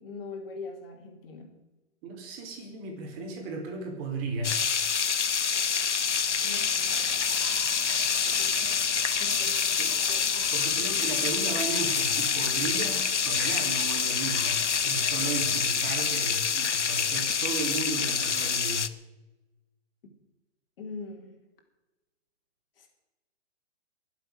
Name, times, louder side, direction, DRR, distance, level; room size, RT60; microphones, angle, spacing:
voice 1, 0.0-1.5 6.4-7.0 8.4-8.6 9.2-9.8 10.1-10.5 20.8-21.4 22.8-22.9, left 4 dB, 50° left, 2 dB, 4.1 m, -42 dB
voice 2, 2.0-4.6 9.8-9.9 10.5-18.9, right 4 dB, 30° right, 3 dB, 4.2 m, -35 dB
sound 1, 4.4-18.9, left 6 dB, 80° left, 1.1 m, -27 dB
Domestic sounds home sounds, 6.0-16.1, left 3 dB, 35° left, 5.0 m, -46 dB
22.5 x 8.1 x 6.5 m, 1.1 s
figure-of-eight pair, 130°, 35 cm